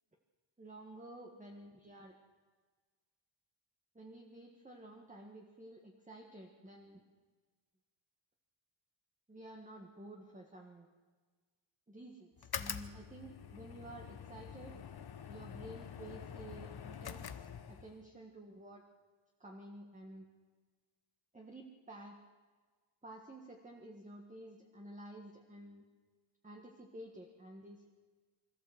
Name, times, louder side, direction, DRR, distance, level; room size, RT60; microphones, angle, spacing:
voice 1, 0.6-2.1 3.9-7.0 9.3-10.9 11.9-14.8 15.3-18.8 19.4-20.2 21.3-22.2 23.0-25.8 26.4-27.8, right 1 dB, 15° right, 1 dB, 1.7 m, -52 dB
sound 1, 12.4-18.0, left 8 dB, 50° left, 1.1 m, -46 dB
24.5 x 14.5 x 8.0 m, 1.5 s
wide cardioid pair, 155°, 47 cm